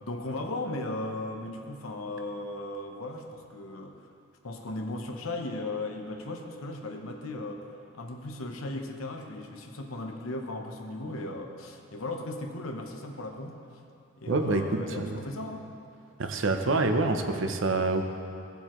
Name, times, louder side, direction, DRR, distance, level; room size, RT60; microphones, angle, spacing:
voice 1, 0.0-4.0 4.4-7.6 7.9-13.6 14.2-15.7, left 2 dB, 85° left, 3 dB, 0.9 m, -36 dB
voice 2, 14.3-15.2 16.2-18.0, right 2 dB, 70° right, 6 dB, 0.7 m, -26 dB
15.5 x 6.9 x 3.1 m, 2.6 s
head